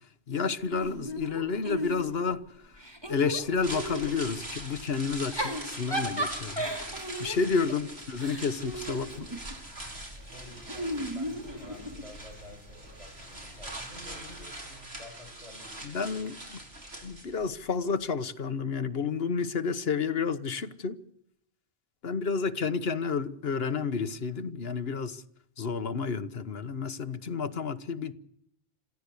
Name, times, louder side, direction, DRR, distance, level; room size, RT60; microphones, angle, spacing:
voice 1, 0.3-2.4 3.1-6.7 7.2-9.3 15.8-16.4 17.0-21.0 22.0-25.2 25.6-28.1, left 5 dB, 70° left, 1.4 m, -30 dB
Giggle / Chuckle chortle, 0.7-2.3 2.7-4.2 5.1-9.6 10.7-12.1, equal, 25° right, 3.7 m, -35 dB
sound 1, 3.4-17.6 17.9-18.0, right 1 dB, 80° right, 5.5 m, -43 dB
sound 2, 8.6-14.5, left 1 dB, 50° right, 6.3 m, -51 dB
voice 2, 8.9-9.6 10.2-16.3 22.4-22.7, left 1 dB, 30° left, 7.6 m, -51 dB
26.5 x 15.5 x 8.3 m
omnidirectional pair, 1.1 m